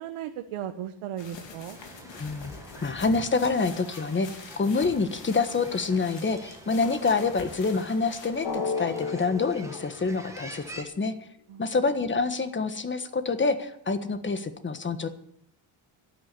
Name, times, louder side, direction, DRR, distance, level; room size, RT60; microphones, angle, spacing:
voice 1, 0.0-1.8 11.5-11.8, right 10 dB, 85° right, 6 dB, 1.2 m, -36 dB
sound 1, 1.2-8.3, left 4 dB, 60° left, 3.6 m, -45 dB
sound 2, 1.7-10.8, right 2 dB, 5° right, 1.9 m, -47 dB
voice 2, 2.1-2.5 2.8-11.1 11.6-15.1, left 4 dB, 25° left, 10 dB, 1.4 m, -27 dB
Drum, 8.4-11.0, left 4 dB, 80° left, 3.1 m, -34 dB
12.0 x 9.4 x 9.7 m, 0.73 s
cardioid pair, 135°, 49 cm